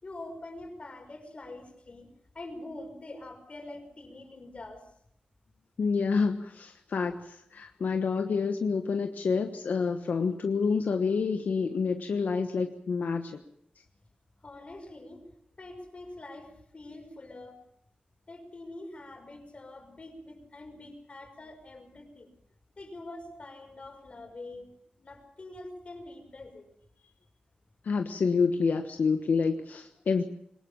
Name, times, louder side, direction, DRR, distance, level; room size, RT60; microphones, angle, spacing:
voice 1, 0.0-2.1 2.3-4.8 14.4-15.2 15.6-17.6 18.3-22.3 22.8-24.7 25.0-26.7, left 2 dB, 45° left, 5 dB, 5.6 m, -45 dB
voice 2, 5.8-13.4 27.8-30.2, left 5 dB, 80° left, 5 dB, 1.3 m, -28 dB
22.5 x 19.5 x 7.2 m, 0.71 s
wide cardioid pair, 95°, 3 cm